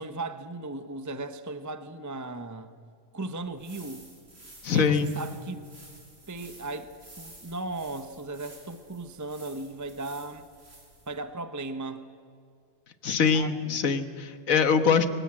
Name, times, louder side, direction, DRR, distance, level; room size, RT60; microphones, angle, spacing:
voice 1, 0.0-2.7 3.1-4.1 4.7-5.7 6.3-6.9 7.2-10.4 11.1-12.1 13.3-13.8, right 2 dB, 15° right, 11 dB, 0.7 m, -37 dB
sound 1, 3.4-11.2, right 1 dB, 50° right, 4.4 m, -52 dB
voice 2, 4.6-5.1 13.0-15.1, left 6 dB, 75° left, 11 dB, 1.6 m, -23 dB
23.0 x 19.5 x 8.7 m, 2.3 s
omnidirectional pair, 1.4 m